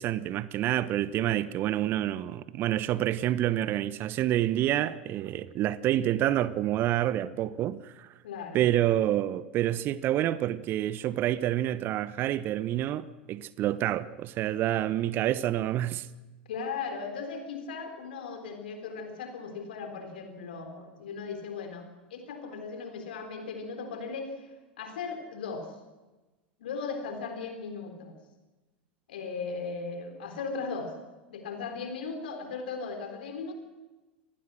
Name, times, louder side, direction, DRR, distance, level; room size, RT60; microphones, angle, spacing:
voice 1, 0.0-8.1 8.5-16.1, right 13 dB, 40° right, 1.1 m, -28 dB
voice 2, 8.2-8.6 16.5-21.8 22.1-24.5 24.8-25.7 26.6-28.2 29.1-30.9 31.3-33.5, left 5 dB, 65° left, 4.1 m, -37 dB
26.0 x 19.5 x 6.4 m
figure-of-eight pair, 85°, 6 cm